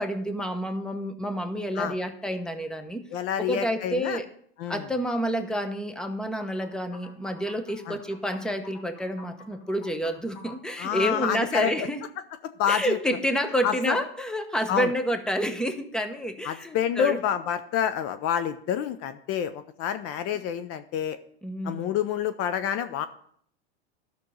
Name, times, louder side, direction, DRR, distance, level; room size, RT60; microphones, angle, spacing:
voice 1, 0.0-3.0 3.4-4.3 4.7-12.0 12.7-17.2 21.4-21.9, equal, ahead, 7 dB, 1.0 m, -29 dB
voice 2, 3.1-4.2 4.6-4.8 7.9-8.0 10.8-11.9 12.6-13.0 13.6-14.0 14.7-14.9 16.4-21.2 21.6-23.1, left 9 dB, 45° left, 12 dB, 0.8 m, -28 dB
sound 1, 6.4-11.5, left 3 dB, 65° left, 3.9 m, -50 dB
12.5 x 6.3 x 5.5 m, 0.63 s
hypercardioid pair, 105°, 33 cm